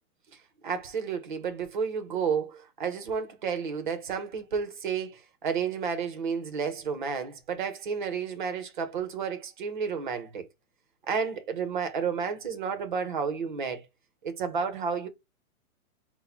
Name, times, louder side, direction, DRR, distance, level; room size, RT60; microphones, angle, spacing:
voice 1, 0.6-10.5 11.1-13.8 14.2-15.1, right 6 dB, 35° right, 0.6 m, -31 dB
4.1 x 2.1 x 4.1 m
hypercardioid pair, 170°, 45 cm